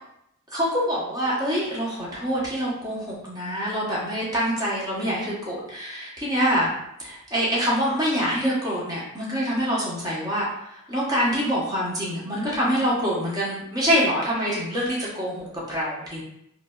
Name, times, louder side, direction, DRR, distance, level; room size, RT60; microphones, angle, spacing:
voice 1, 0.5-6.7 7.0-16.2, equal, 20° right, -6 dB, 1.0 m, -25 dB
4.8 x 2.0 x 2.4 m, 0.79 s
head